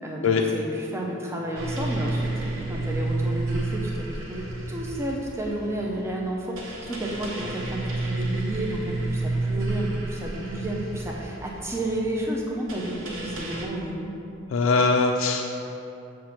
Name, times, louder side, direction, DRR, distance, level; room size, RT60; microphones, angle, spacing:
voice 1, 0.0-14.1, right 1 dB, 15° right, -2 dB, 0.4 m, -31 dB
sound 1, 1.6-13.7, right 2 dB, 70° right, 0.7 m, -31 dB
voice 2, 14.5-15.5, left 4 dB, 70° left, 1 dB, 0.3 m, -21 dB
7.2 x 2.5 x 5.7 m, 2.9 s
head